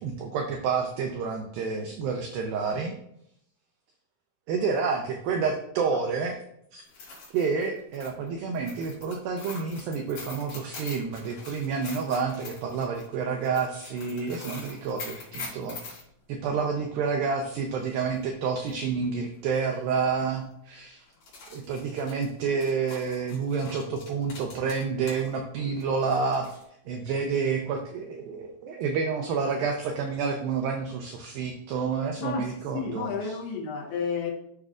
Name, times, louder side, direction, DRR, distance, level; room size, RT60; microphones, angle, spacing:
voice 1, 0.0-3.0 4.5-6.4 6.7-6.8 7.3-16.0 16.3-21.0 21.5-26.5 26.9-33.4, right 5 dB, 75° right, 3 dB, 2.2 m, -29 dB
sound 1, 6.8-16.0 18.2-18.3 18.7-18.8 19.6-19.8 20.1-20.2 21.1-25.3 25.6-26.6, left 3 dB, 55° left, 3.5 m, -44 dB
voice 2, 32.2-34.3, left 5 dB, 75° left, -1 dB, 3.3 m, -32 dB
13.0 x 6.1 x 2.5 m, 0.74 s
omnidirectional pair, 4.7 m